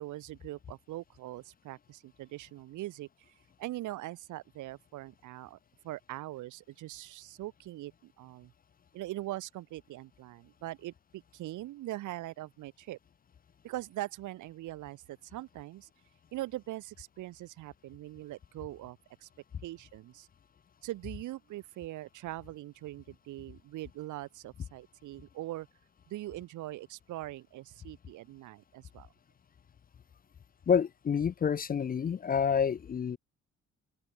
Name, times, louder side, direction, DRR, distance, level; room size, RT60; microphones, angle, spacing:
voice 1, 0.0-3.1 3.6-5.6 5.8-8.5 8.9-13.0 13.6-15.9 16.3-19.3 19.6-20.3 20.8-25.7 26.1-29.1, right 16 dB, 75° right, 0.8 m, -42 dB
voice 2, 30.7-33.2, left 7 dB, 30° left, 0.4 m, -28 dB
open air
cardioid pair, 90°, 30 cm